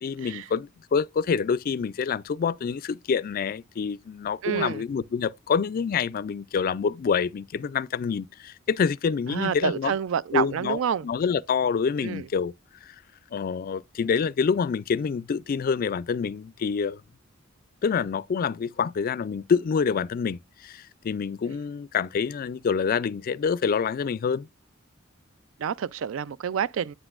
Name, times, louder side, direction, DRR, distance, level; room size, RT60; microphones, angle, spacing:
voice 1, 0.0-10.0 10.3-12.5 12.8-12.9 13.3-17.0 17.8-24.5, left 6 dB, 45° left, 0.3 m, -27 dB
voice 2, 4.4-4.8 9.3-11.1 12.0-12.2 25.6-26.9, right 8 dB, 80° right, 0.4 m, -28 dB
8.0 x 7.9 x 2.4 m
head